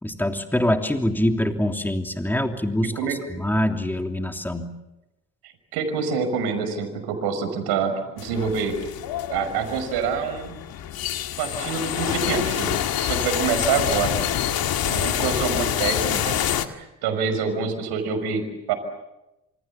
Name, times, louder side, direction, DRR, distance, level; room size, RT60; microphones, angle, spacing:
voice 1, 0.0-4.7, left 1 dB, 5° left, 4 dB, 3.1 m, -24 dB
voice 2, 5.7-8.8 9.3-10.6 11.4-14.2 14.8-18.7, right 6 dB, 75° right, 8 dB, 5.8 m, -26 dB
sound 1, 8.2-16.7, left 10 dB, 60° left, 2.1 m, -26 dB
28.0 x 27.5 x 7.2 m, 0.96 s
hypercardioid pair, 50°, 40 cm